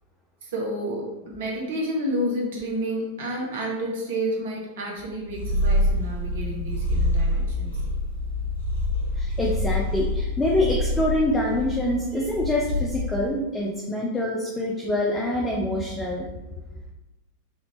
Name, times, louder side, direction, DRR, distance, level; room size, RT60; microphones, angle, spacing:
voice 1, 0.4-7.8, equal, 55° right, -2 dB, 0.9 m, -30 dB
Purr, 5.3-13.4, left 1 dB, 70° left, 0.8 m, -26 dB
voice 2, 9.2-16.3, left 1 dB, 10° left, -2 dB, 0.4 m, -25 dB
3.3 x 2.4 x 3.1 m, 1.0 s
figure-of-eight pair, 90°, 0 cm